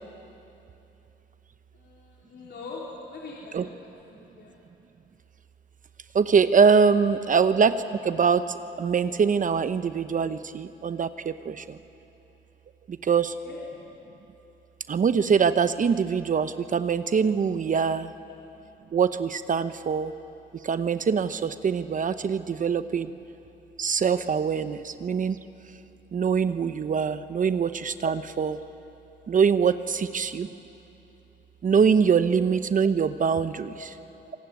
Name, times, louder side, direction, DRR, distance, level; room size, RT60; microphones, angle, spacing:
voice 1, 1.8-4.6 7.3-7.4 13.4-13.7 33.8-33.9, left 3 dB, 60° left, -4 dB, 3.8 m, -42 dB
voice 2, 6.1-7.7 8.0-11.8 12.9-13.3 14.9-18.1 18.9-20.1 20.6-23.1 23.8-25.4 26.1-28.6 29.3-30.5 31.6-33.9, right 6 dB, 40° right, 11 dB, 0.8 m, -23 dB
26.5 x 18.5 x 9.4 m, 2.9 s
cardioid pair, 90°, 20 cm